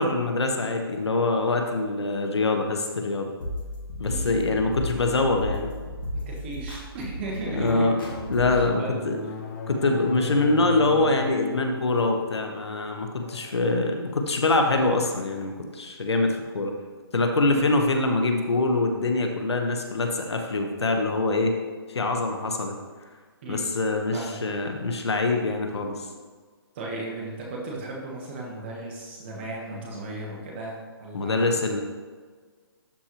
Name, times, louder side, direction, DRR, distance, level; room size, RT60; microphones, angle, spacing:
voice 1, 0.0-3.3 4.0-5.7 7.5-8.0 8.3-9.2 9.7-16.7 17.1-21.5 21.9-22.7 23.5-26.1 31.1-31.8, left 2 dB, 90° left, 4 dB, 1.2 m, -24 dB
sound 1, 3.4-8.7, left 1 dB, 55° left, 2.0 m, -34 dB
voice 2, 3.9-4.6 6.1-8.1 8.5-9.0 17.4-17.6 23.4-23.7 24.1-24.4 26.7-31.6, right 2 dB, 25° right, -3 dB, 1.3 m, -36 dB
sound 2, 7.4-15.5, left 2 dB, 35° left, 1.0 m, -37 dB
12.0 x 4.3 x 3.0 m, 1.5 s
hypercardioid pair, 165°, 14 cm